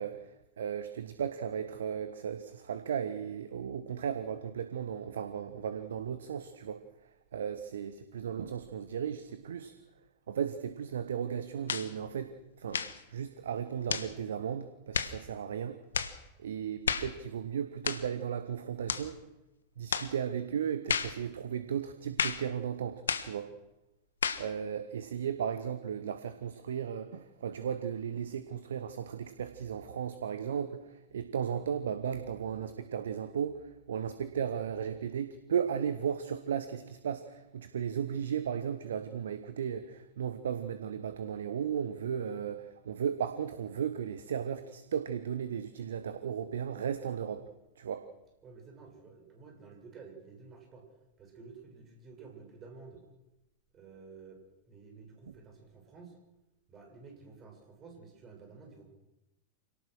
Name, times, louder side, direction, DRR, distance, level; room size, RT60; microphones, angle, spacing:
voice 1, 0.0-6.8 7.3-9.7 10.3-12.8 13.1-15.8 16.4-19.2 19.8-23.5 24.4-47.5 47.8-48.1, right 8 dB, 65° right, 11 dB, 1.2 m, -35 dB
sound 1, 11.7-11.9 12.7-13.0 13.9-14.1 14.9-15.2 15.9-16.2 16.8-17.1 17.8-18.1 18.9-19.1 19.9-20.1 20.9-21.2 22.2-22.5 23.1-23.3 24.2-24.5, left 6 dB, 70° left, 1.3 m, -32 dB
voice 2, 48.4-50.9 51.2-53.0 53.7-56.2 56.7-58.9, right 4 dB, 25° right, 3 dB, 7.1 m, -52 dB
27.0 x 18.5 x 6.4 m, 0.93 s
figure-of-eight pair, 90°, 0 cm